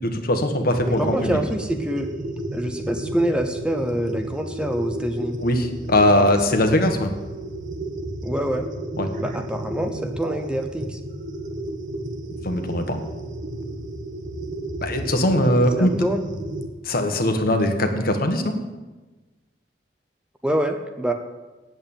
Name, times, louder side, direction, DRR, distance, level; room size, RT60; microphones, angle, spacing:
voice 1, 0.0-1.3 5.4-7.1 9.0-9.1 12.4-13.0 14.8-15.9 16.8-18.6, left 1 dB, 55° left, 5 dB, 1.5 m, -20 dB
sound 1, 0.7-16.7, right 1 dB, 50° right, 1.2 m, -32 dB
voice 2, 0.9-2.1 2.5-5.4 6.5-6.8 8.2-8.7 9.2-11.0 15.8-16.2 20.4-21.1, right 1 dB, 5° right, 6 dB, 0.8 m, -26 dB
9.2 x 7.9 x 8.8 m, 1.2 s
head